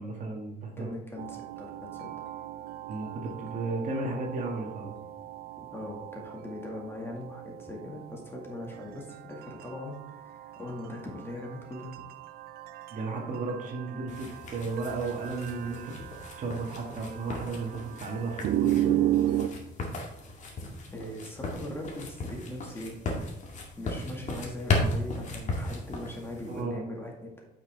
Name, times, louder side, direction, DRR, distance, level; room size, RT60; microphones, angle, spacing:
voice 1, 0.0-0.9 2.9-4.9 12.9-15.9 16.4-19.0 26.5-26.8, right 3 dB, 50° right, 1 dB, 1.9 m, -34 dB
voice 2, 0.8-2.1 5.7-12.0 20.9-23.0 23.8-27.4, left 1 dB, 15° left, 0 dB, 2.0 m, -40 dB
sound 1, 1.2-19.5, right 12 dB, 65° right, 0.5 m, -35 dB
sound 2, 14.1-26.6, left 2 dB, 45° left, 2.1 m, -36 dB
8.7 x 6.0 x 3.5 m, 0.82 s
cardioid pair, 110°, 17 cm